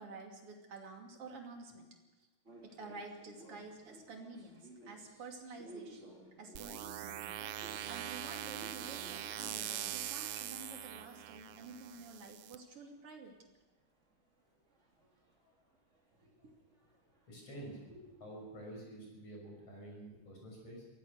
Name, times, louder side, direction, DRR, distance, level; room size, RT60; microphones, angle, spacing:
voice 1, 0.0-2.0 2.6-6.1 6.4-7.2 7.9-13.4 16.2-16.6 17.9-18.2, right 3 dB, 45° right, 2 dB, 3.6 m, -50 dB
sound 1, 2.4-13.3 13.6-18.8, right 1 dB, 20° right, 3.6 m, -58 dB
sound 2, 6.6-12.6, right 12 dB, 75° right, 1.4 m, -42 dB
voice 2, 17.3-17.8 18.2-20.9, right 1 dB, 50° left, 0 dB, 7.5 m, -49 dB
23.5 x 17.0 x 6.6 m, 1.1 s
omnidirectional pair, 3.7 m